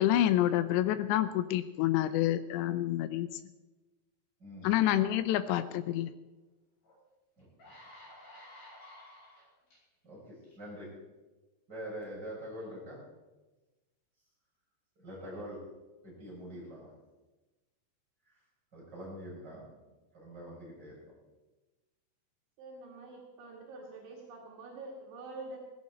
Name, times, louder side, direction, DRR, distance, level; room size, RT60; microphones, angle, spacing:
voice 1, 0.0-3.4 4.6-6.1, left 13 dB, 85° left, 12 dB, 2.6 m, -28 dB
sound 1, 6.8-6.9 7.4-9.8 10.4-10.7, left 1 dB, 55° left, 8.9 m, -53 dB
voice 2, 10.0-10.9 11.7-13.0 15.0-15.6 16.0-16.9 18.3-18.4 18.7-19.6 20.1-21.0, equal, 20° right, -5 dB, 6.6 m, -44 dB
voice 3, 22.6-25.6, right 2 dB, 75° right, -2 dB, 4.3 m, -46 dB
17.5 x 15.5 x 4.3 m, 1.1 s
omnidirectional pair, 5.5 m